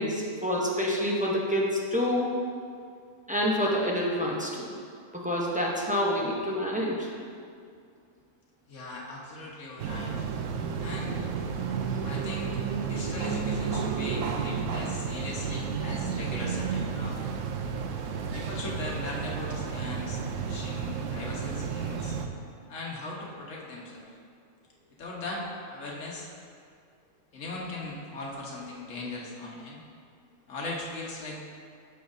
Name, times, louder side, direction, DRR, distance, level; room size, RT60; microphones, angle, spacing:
voice 1, 0.0-2.3 3.3-4.7 5.1-7.1, equal, 10° right, -4 dB, 0.4 m, -27 dB
voice 2, 8.7-10.1 10.8-11.2 12.0-17.2 18.3-22.2 22.7-24.0 25.0-26.3 27.3-29.8 30.5-31.4, left 2 dB, 55° left, -3 dB, 1.4 m, -39 dB
sound 1, 9.8-22.3, right 6 dB, 70° right, 0.8 m, -32 dB
9.1 x 6.6 x 2.7 m, 2.3 s
omnidirectional pair, 1.5 m